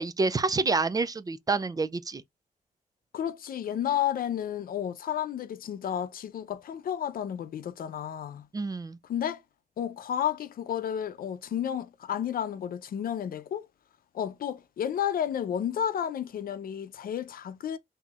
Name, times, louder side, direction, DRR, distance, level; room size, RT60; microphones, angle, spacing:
voice 1, 0.0-2.2 8.5-9.0, right 3 dB, 25° right, 0.3 m, -28 dB
voice 2, 3.1-8.5 9.1-9.4 9.8-13.7 14.1-17.8, left 9 dB, 80° left, 0.6 m, -32 dB
5.8 x 2.7 x 2.4 m
wide cardioid pair, 130°, 15 cm